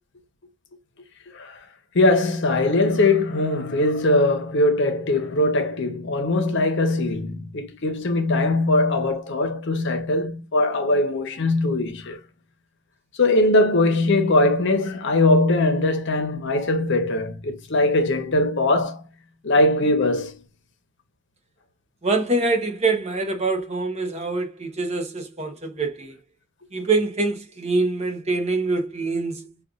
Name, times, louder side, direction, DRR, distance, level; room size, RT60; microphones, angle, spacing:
voice 1, 1.9-12.2 13.2-19.0 19.4-20.4, left 2 dB, 60° left, 0.8 m, -21 dB
voice 2, 22.0-26.2 26.7-29.5, right 3 dB, 30° right, 0.8 m, -24 dB
5.1 x 2.4 x 2.3 m
head